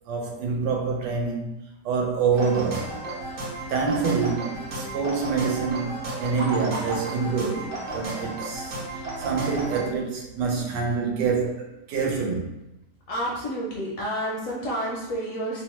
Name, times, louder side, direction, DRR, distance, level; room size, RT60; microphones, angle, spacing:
voice 1, 0.1-1.6 1.8-2.9 3.7-12.5, right 5 dB, 90° right, 1 dB, 1.3 m, -26 dB
sound 1, 2.3-9.9, right 2 dB, 55° right, 0.9 m, -33 dB
voice 2, 13.1-15.6, equal, 70° left, -4 dB, 0.8 m, -30 dB
2.9 x 2.0 x 3.0 m, 0.93 s
omnidirectional pair, 1.8 m